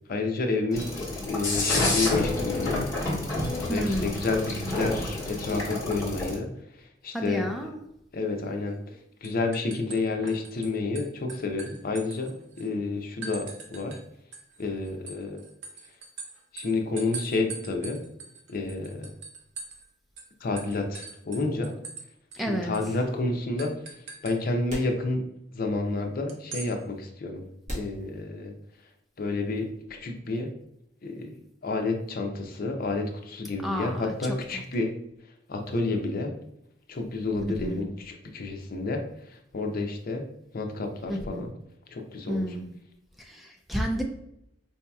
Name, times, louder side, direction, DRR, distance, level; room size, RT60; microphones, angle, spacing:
voice 1, 0.1-0.9 1.2-2.8 3.7-6.5 7.0-7.5 8.1-8.8 9.2-14.0 14.6-15.4 16.5-18.0 18.5-19.1 20.4-21.7 22.5-23.7 24.2-25.3 25.5-27.4 27.7-28.5 29.2-30.5 31.0-31.3 31.6-34.9 35.5-36.3 36.9-39.0 39.5-40.2 40.5-41.5 41.9-42.6, left 3 dB, 50° left, 4 dB, 0.5 m, -30 dB
sound 1, 0.7-6.3, left 2 dB, 15° left, 1.3 m, -29 dB
voice 2, 3.7-4.1 7.1-7.8 22.4-22.7 33.6-34.1 34.5-34.6 37.4-37.8 41.1-41.4 42.3-42.7 43.3-44.0, equal, ahead, 1 dB, 0.3 m, -30 dB
sound 2, 8.7-8.9 9.2-10.7 10.9-12.7 13.2-14.0 14.3-19.9 20.2-20.3 20.6-22.0 22.3-22.4 22.7-22.9 23.6-24.4 26.3-26.7, right 4 dB, 80° right, 0.7 m, -42 dB
sound 3, 24.7-25.6 25.9-26.0 26.7-26.8 27.6-28.9, equal, 40° right, 1.4 m, -40 dB
4.7 x 2.8 x 2.2 m, 0.77 s
head